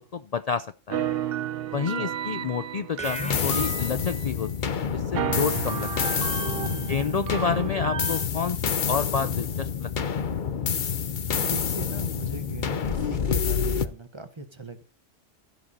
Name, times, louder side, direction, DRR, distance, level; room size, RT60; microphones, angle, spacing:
voice 1, 0.1-1.0 1.7-6.2 6.9-10.2, left 6 dB, 65° left, 12 dB, 0.4 m, -30 dB
sound 1, 0.9-4.7 5.1-8.3, right 9 dB, 55° right, 0.8 m, -32 dB
voice 2, 1.6-2.1 6.6-7.2 11.3-14.8, right 3 dB, 25° right, 8 dB, 1.0 m, -40 dB
sound 2, 3.0-13.9, left 7 dB, 45° left, 0.8 m, -28 dB
sound 3, 3.0-4.1, left 1 dB, 5° left, 0.9 m, -34 dB
15.5 x 5.1 x 4.1 m, 0.38 s
omnidirectional pair, 1.3 m